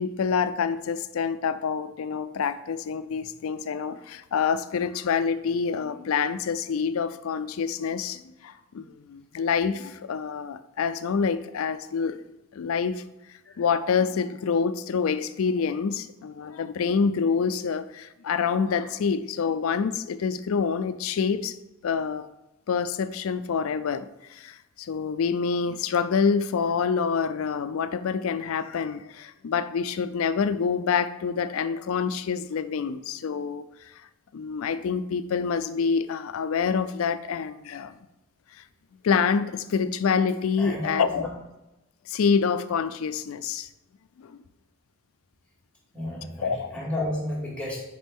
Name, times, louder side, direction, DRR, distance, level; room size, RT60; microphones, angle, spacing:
voice 1, 0.0-12.2 12.5-13.0 13.6-21.6 21.8-22.3 22.7-33.9 34.3-37.9 38.5-38.6 39.0-41.3 42.1-43.7 44.2-44.4 46.4-46.7, left 6 dB, 80° left, 13 dB, 0.4 m, -27 dB
voice 2, 40.6-41.3 45.9-47.8, left 1 dB, 5° left, -5 dB, 2.1 m, -32 dB
7.3 x 5.2 x 3.5 m, 0.96 s
head